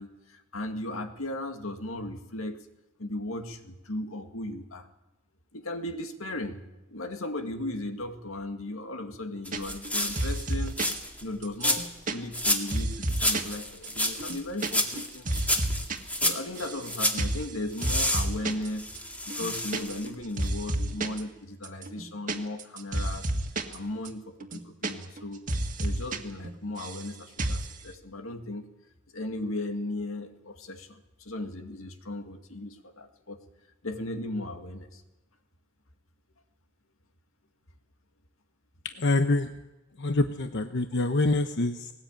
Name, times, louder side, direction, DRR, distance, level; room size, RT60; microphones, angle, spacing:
voice 1, 0.0-2.7 3.0-4.9 5.5-6.6 6.9-10.8 11.2-11.8 12.1-15.6 16.2-18.9 19.3-23.3 23.7-25.4 25.8-28.7 29.1-33.4 33.8-35.0, left 1 dB, 85° left, 6 dB, 2.1 m, -36 dB
sound 1, 9.4-11.2 11.6-12.0 12.3-12.8 13.1-17.2 17.8-20.1 20.4-20.5, left 1 dB, 5° left, 2.2 m, -30 dB
sound 2, 9.5-9.9 10.2-11.0 11.4-13.5 13.8-13.9 14.2-14.7 15.0-16.0 16.2-16.9 17.2-17.5 17.8-18.7 19.0-19.1 19.3-20.1 20.4-21.2 21.6-23.8 24.1-24.2 24.4-25.2 25.5-26.2 26.4-27.1 27.4-27.7, right 1 dB, 40° right, 1.8 m, -31 dB
voice 2, 38.8-39.5 40.0-41.9, left 2 dB, 60° left, 7 dB, 1.0 m, -26 dB
19.5 x 18.5 x 8.9 m, 1.0 s
head